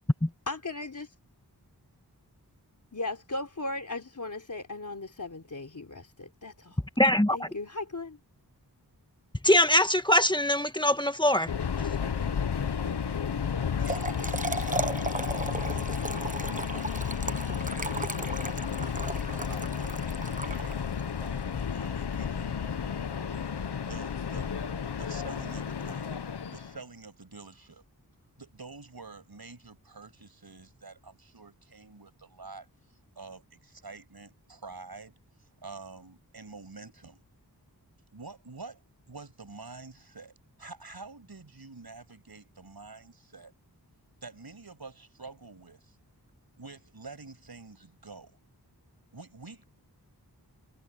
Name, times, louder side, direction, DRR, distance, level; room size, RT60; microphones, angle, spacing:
voice 1, 0.5-1.1 2.9-6.8 7.3-8.2, left 2 dB, 50° left, 3.6 m, -37 dB
voice 2, 7.0-7.5 9.4-11.5 11.8-11.9, left 1 dB, 10° left, 1.6 m, -23 dB
Subway metro underground, 11.5-26.8, left 7 dB, 80° left, 1.0 m, -32 dB
Trickle dribble / Fill (with liquid), 13.6-21.1, right 2 dB, 20° right, 0.9 m, -35 dB
voice 3, 13.8-14.7 15.0-15.9 16.5-18.6 19.3-22.6 23.5-24.5 25.0-26.2 26.5-27.8 28.4-32.7 33.1-35.1 35.6-37.2 38.1-38.8 39.1-43.5 44.2-46.0 46.6-48.4 49.1-49.7, right 3 dB, 65° right, 6.9 m, -48 dB
wide cardioid pair, 65°, 40 cm